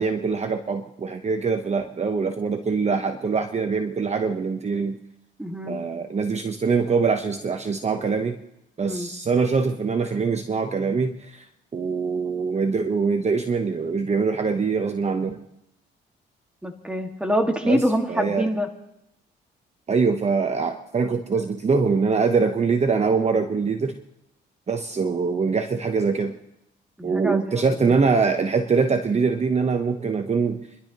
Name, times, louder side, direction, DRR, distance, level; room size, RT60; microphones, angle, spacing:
voice 1, 0.0-5.0 5.7-8.4 8.8-15.4 17.6-17.8 18.1-18.5 19.9-24.0 24.7-26.4 27.0-30.7, right 5 dB, 35° right, 6 dB, 1.0 m, -23 dB
voice 2, 5.4-5.8 8.8-9.1 16.6-18.7 27.0-27.9, equal, 5° right, 3 dB, 2.0 m, -25 dB
30.0 x 12.0 x 3.0 m, 0.83 s
cardioid pair, 90°, 20 cm